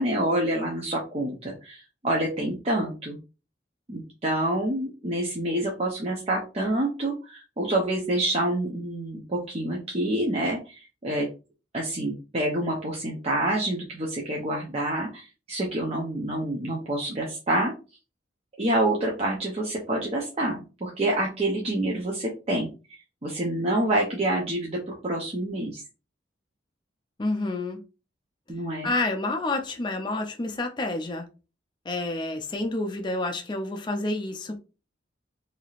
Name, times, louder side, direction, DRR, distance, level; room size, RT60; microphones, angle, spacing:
voice 1, 0.0-3.2 3.9-11.3 11.7-17.7 18.6-22.7 23.2-25.8 28.5-28.9, right 1 dB, 35° right, 0.6 m, -27 dB
voice 2, 27.2-27.8 28.8-31.3 31.9-34.6, left 2 dB, 25° left, 0.4 m, -29 dB
3.3 x 2.7 x 2.4 m
head